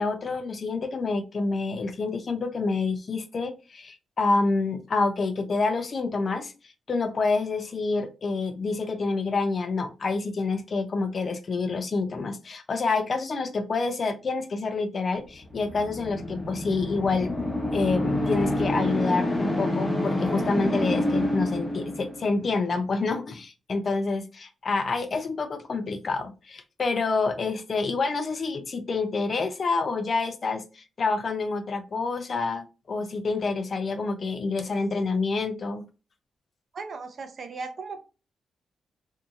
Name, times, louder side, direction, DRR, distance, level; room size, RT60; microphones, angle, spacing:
voice 1, 0.0-6.5 6.9-35.9, left 3 dB, 50° left, 8 dB, 0.5 m, -28 dB
sound 1, 15.4-22.4, left 1 dB, 20° left, 0.9 m, -28 dB
voice 2, 36.7-38.0, right 4 dB, 55° right, 7 dB, 0.6 m, -37 dB
2.7 x 2.6 x 2.4 m, 0.32 s
cardioid pair, 75°, 0 cm